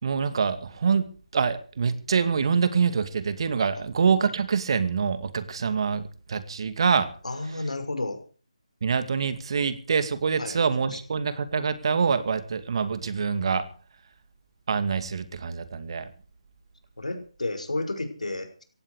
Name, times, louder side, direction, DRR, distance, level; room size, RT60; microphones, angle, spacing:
voice 1, 0.0-1.1 1.3-7.1 8.8-13.6 14.7-16.1, right 6 dB, 45° right, 11 dB, 2.4 m, -25 dB
voice 2, 7.2-8.2 10.4-10.6 10.9-11.0 17.0-18.6, left 2 dB, 85° left, 7 dB, 5.8 m, -32 dB
18.5 x 15.5 x 4.9 m, 0.40 s
figure-of-eight pair, 160°, 4 cm